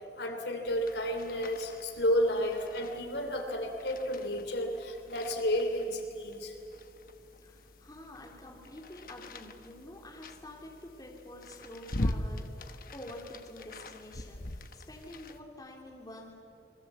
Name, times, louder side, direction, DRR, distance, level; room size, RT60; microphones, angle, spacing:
voice 1, 0.2-6.5, equal, 70° left, 5 dB, 3.0 m, -31 dB
sound 1, 0.6-15.4, left 1 dB, 50° left, 1.2 m, -42 dB
voice 2, 7.4-16.4, left 1 dB, 20° left, -1 dB, 3.3 m, -48 dB
28.0 x 22.0 x 8.2 m, 2.7 s
head